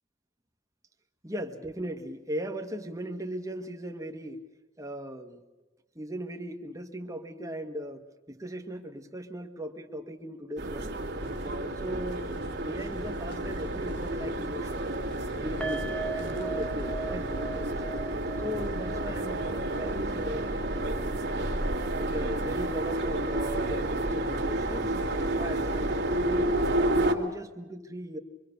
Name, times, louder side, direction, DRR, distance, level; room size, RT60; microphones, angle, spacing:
voice 1, 1.2-4.4 4.8-5.4 6.0-11.0 11.4-14.9 15.4-17.9 18.4-20.5 22.0-28.2, equal, 15° right, 5 dB, 1.7 m, -38 dB
sound 1, 10.6-27.1, right 1 dB, 55° right, 2.2 m, -30 dB
sound 2, 11.2-21.0, left 1 dB, 65° left, 1.4 m, -48 dB
sound 3, 15.6-22.8 23.1-23.3 23.6-23.7, right 3 dB, 5° left, 0.7 m, -40 dB
25.0 x 24.5 x 6.9 m, 1.2 s
head